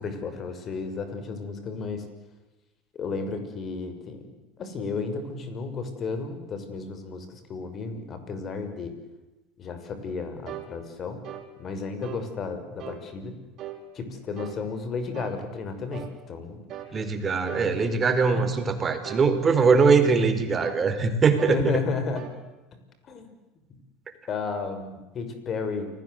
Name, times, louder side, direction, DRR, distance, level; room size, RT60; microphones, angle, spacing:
voice 1, 0.0-2.1 2.9-4.3 4.6-9.0 9.6-11.2 11.6-13.4 13.9-16.6 17.6-17.9 18.4-18.5 21.5-22.3 23.1-23.3 24.3-25.9, left 4 dB, 40° left, 9 dB, 6.1 m, -33 dB
sound 1, 10.5-10.7 11.2-11.5 12.0-12.3 12.8-13.0 13.6-13.8 14.4-14.6 15.1-15.4 15.9-16.2 16.7-16.9 17.5-17.7 18.2-18.5 19.0-19.3 19.8-20.1 20.6-20.9 21.4-21.6 22.2-22.4, right 12 dB, 45° right, 5.0 m, -39 dB
voice 2, 16.9-21.6, right 5 dB, 30° right, 8 dB, 4.7 m, -21 dB
29.0 x 20.0 x 8.1 m, 1.0 s
hypercardioid pair, 80°, 0 cm